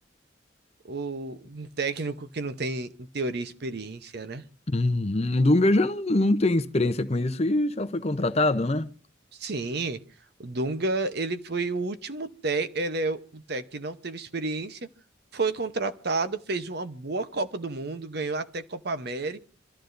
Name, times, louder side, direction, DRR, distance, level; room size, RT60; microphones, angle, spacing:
voice 1, 0.9-4.4 9.4-10.0 10.4-14.9 15.3-19.4, right 3 dB, 55° right, 0.8 m, -31 dB
voice 2, 4.7-8.9, left 2 dB, 30° left, 0.7 m, -23 dB
27.0 x 13.5 x 2.6 m
head